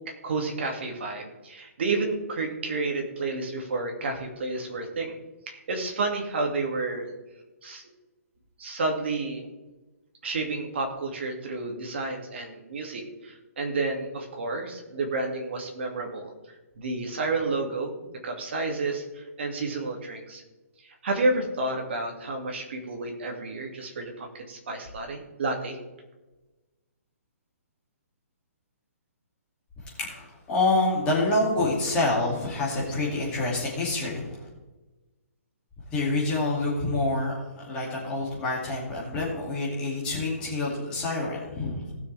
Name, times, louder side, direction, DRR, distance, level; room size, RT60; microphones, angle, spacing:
voice 1, 0.2-5.1 5.5-7.1 7.6-7.8 8.6-9.5 10.2-16.3 16.8-20.4 20.8-25.8, right 3 dB, 45° right, 2 dB, 2.2 m, -30 dB
voice 2, 30.0-34.4 35.9-41.9, left 2 dB, 10° left, -5 dB, 2.4 m, -27 dB
19.0 x 6.4 x 3.4 m, 1.1 s
hypercardioid pair, 175°, 8 cm